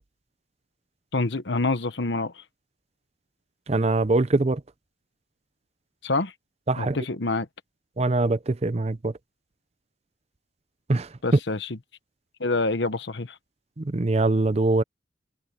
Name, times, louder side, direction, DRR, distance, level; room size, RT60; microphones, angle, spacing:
voice 1, 1.1-2.4 6.0-6.3 6.7-7.5 11.2-11.8 12.4-13.4, left 3 dB, 70° left, 1.2 m, -26 dB
voice 2, 3.7-4.6 6.7-7.0 8.0-9.1 10.9-11.1 13.8-14.8, right 2 dB, 35° right, 0.6 m, -23 dB
head